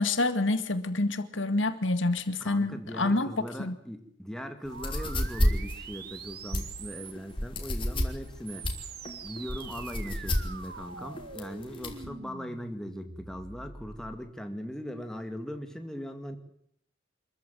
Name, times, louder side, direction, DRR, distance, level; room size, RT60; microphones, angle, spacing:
voice 1, 0.0-3.8, left 2 dB, 75° left, 1.9 m, -27 dB
voice 2, 2.4-8.7 9.2-16.4, equal, 5° left, 2.3 m, -39 dB
sound 1, 4.6-12.1, left 1 dB, 25° left, 3.3 m, -30 dB
sound 2, 4.7-7.4 8.2-14.2, right 5 dB, 55° right, 1.9 m, -45 dB
26.0 x 14.0 x 9.3 m
head